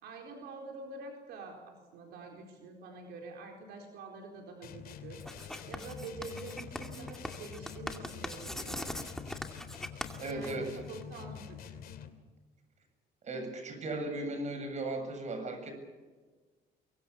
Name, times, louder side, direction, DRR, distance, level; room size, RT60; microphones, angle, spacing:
voice 1, 0.0-9.1 10.2-11.8, right 3 dB, 80° right, 2 dB, 4.4 m, -46 dB
sound 1, 4.6-12.3, left 8 dB, 60° left, 2.8 m, -47 dB
Writing, 5.2-11.0, left 1 dB, 5° left, 2.3 m, -41 dB
voice 2, 10.2-10.8 13.2-15.7, right 2 dB, 45° right, 6 dB, 7.7 m, -37 dB
24.0 x 23.5 x 7.2 m, 1.4 s
cardioid pair, 110°, 17 cm